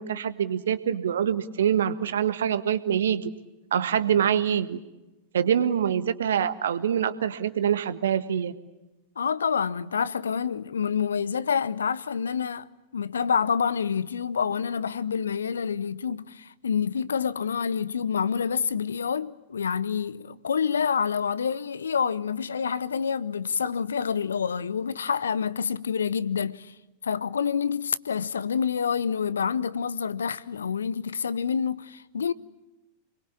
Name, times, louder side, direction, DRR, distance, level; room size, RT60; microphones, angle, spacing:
voice 1, 0.0-3.3 3.7-4.8 5.3-8.5, right 9 dB, 65° right, 1.5 m, -25 dB
voice 2, 9.2-26.7 27.0-32.3, left 6 dB, 70° left, 0.9 m, -27 dB
28.5 x 22.0 x 8.6 m
figure-of-eight pair, 90°, 0 cm